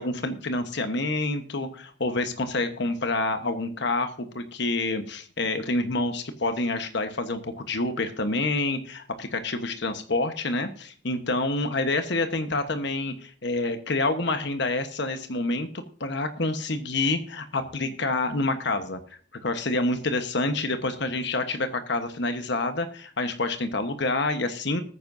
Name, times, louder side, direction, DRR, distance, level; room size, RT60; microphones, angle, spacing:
voice 1, 0.0-19.0 19.4-24.8, left 2 dB, 60° left, 7 dB, 1.2 m, -27 dB
20.0 x 9.6 x 2.7 m, 0.42 s
head